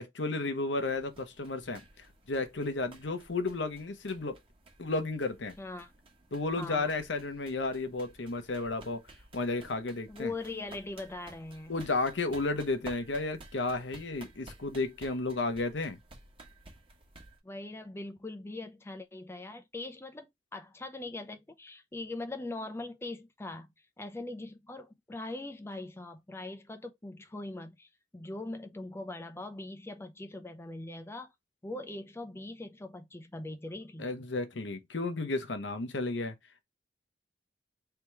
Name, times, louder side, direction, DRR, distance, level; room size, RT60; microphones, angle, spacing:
voice 1, 0.0-4.4 4.8-5.6 6.3-9.0 9.3-10.3 11.7-16.0 34.0-36.3, left 3 dB, 75° left, 0.9 m, -33 dB
sound 1, 0.7-17.4, right 2 dB, 30° right, 1.2 m, -54 dB
voice 2, 5.6-5.9 6.6-7.0 10.1-11.8 17.4-23.7 24.0-31.3 31.6-34.1, left 2 dB, 15° left, 0.5 m, -41 dB
3.4 x 2.9 x 4.5 m
head